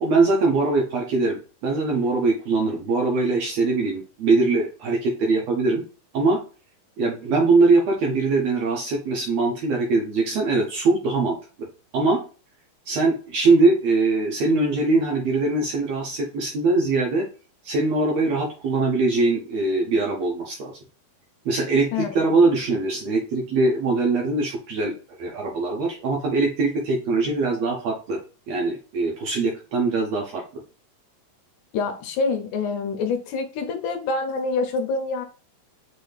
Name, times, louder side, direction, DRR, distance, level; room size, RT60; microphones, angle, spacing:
voice 1, 0.0-5.8 6.1-6.4 7.0-11.4 11.9-12.2 12.9-17.3 17.6-20.7 21.4-24.9 25.2-28.2 28.5-30.4, right 3 dB, 70° right, 1.6 m, -22 dB
voice 2, 21.9-22.3 31.7-35.3, left 4 dB, 75° left, 2.0 m, -26 dB
5.7 x 2.7 x 3.2 m
omnidirectional pair, 3.8 m